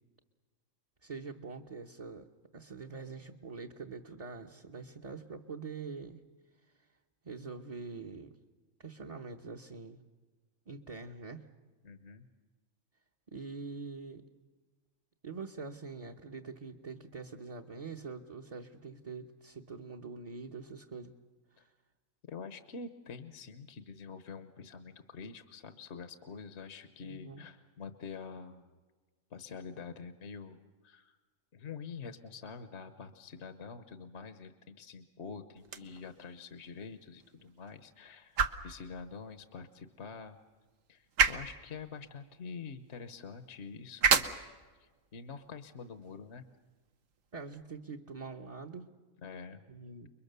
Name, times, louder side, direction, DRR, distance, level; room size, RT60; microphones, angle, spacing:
voice 1, 1.0-2.3 2.5-6.2 7.2-8.3 8.8-10.0 10.7-11.5 13.3-14.2 15.2-21.1 21.5-21.7 27.0-27.5 47.3-48.9 49.7-50.1, right 4 dB, 30° right, 0 dB, 1.0 m, -44 dB
voice 2, 11.8-12.3 21.6-21.7 22.2-28.7 29.3-31.2 31.5-40.4 40.9-44.1 44.8-46.5 49.2-49.6, left 5 dB, 60° left, 10 dB, 1.3 m, -46 dB
sound 1, 35.6-47.6, right 6 dB, 75° right, 1.5 m, -36 dB
29.5 x 22.5 x 6.8 m, 1.3 s
omnidirectional pair, 1.4 m